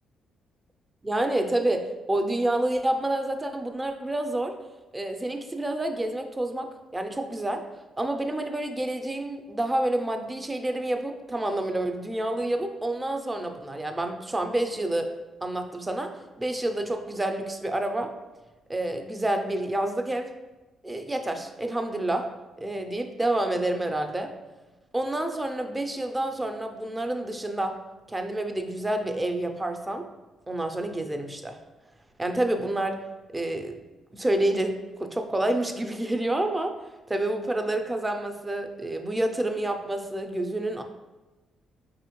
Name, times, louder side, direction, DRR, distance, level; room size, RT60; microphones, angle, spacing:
voice 1, 1.0-4.5 4.9-7.6 8.0-15.1 15.4-16.1 16.4-18.1 18.7-20.3 20.8-22.3 22.6-24.3 24.9-27.8 28.1-30.0 30.5-31.6 32.2-33.0 33.3-33.8 34.1-36.7 37.1-40.8, right 1 dB, 15° right, 5 dB, 0.4 m, -28 dB
4.7 x 2.8 x 3.0 m, 1.1 s
cardioid pair, 90°, 0 cm